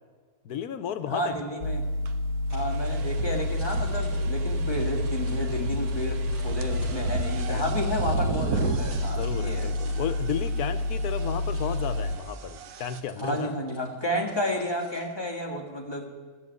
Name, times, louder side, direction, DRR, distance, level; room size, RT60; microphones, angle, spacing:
voice 1, 0.4-1.4 7.5-7.7 8.1-8.2 9.2-13.6, left 9 dB, 85° left, 11 dB, 1.3 m, -33 dB
voice 2, 1.1-1.8 2.5-9.7 13.2-16.1, equal, 15° left, 0 dB, 1.9 m, -31 dB
sound 1, 1.6-12.2, left 2 dB, 55° left, 1.7 m, -29 dB
sound 2, 2.1-2.2 2.7-13.0, right 7 dB, 85° right, 1.3 m, -36 dB
sound 3, 2.5-15.0, equal, 55° right, 4.5 m, -52 dB
15.0 x 6.8 x 9.4 m, 1.5 s
omnidirectional pair, 1.6 m